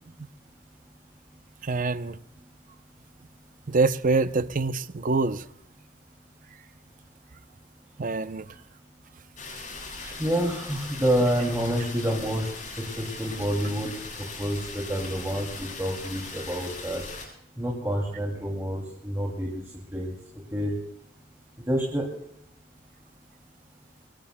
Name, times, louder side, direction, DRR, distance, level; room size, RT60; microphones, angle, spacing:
voice 1, 1.6-2.2 3.7-5.4 8.0-8.4, right 3 dB, 40° right, 0.6 m, -25 dB
sound 1, 9.4-17.2, left 3 dB, 40° left, 7.4 m, -39 dB
voice 2, 10.0-12.5 12.8-13.9 14.4-17.0 17.6-19.6 19.9-20.1 20.5-20.7 21.7-22.0, equal, 15° right, 2.5 m, -28 dB
24.5 x 21.5 x 2.2 m
head